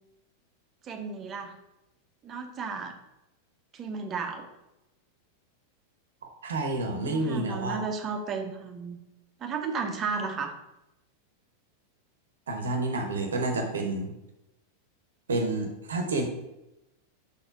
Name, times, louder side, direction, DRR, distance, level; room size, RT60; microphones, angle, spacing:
voice 1, 0.8-1.5 2.2-2.9 3.7-4.5 6.9-9.0 9.4-10.5, right 5 dB, 30° right, 6 dB, 0.9 m, -33 dB
voice 2, 6.4-7.8 12.5-14.1 15.3-16.2, right 2 dB, 65° right, 4 dB, 0.9 m, -29 dB
5.4 x 4.5 x 5.7 m, 0.91 s
figure-of-eight pair, 90°, 0 cm